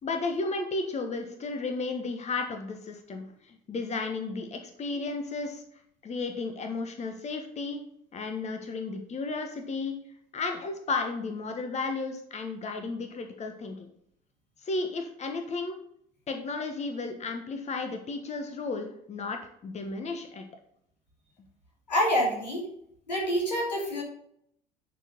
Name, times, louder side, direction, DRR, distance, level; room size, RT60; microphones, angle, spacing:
voice 1, 0.0-5.6 6.0-7.8 8.1-10.0 10.3-13.9 14.6-15.8 16.3-20.4, left 3 dB, 30° left, 5 dB, 1.3 m, -33 dB
voice 2, 21.9-22.6 23.1-24.0, equal, 85° left, -2 dB, 2.5 m, -26 dB
10.5 x 4.7 x 5.2 m, 0.70 s
figure-of-eight pair, 60°, 21 cm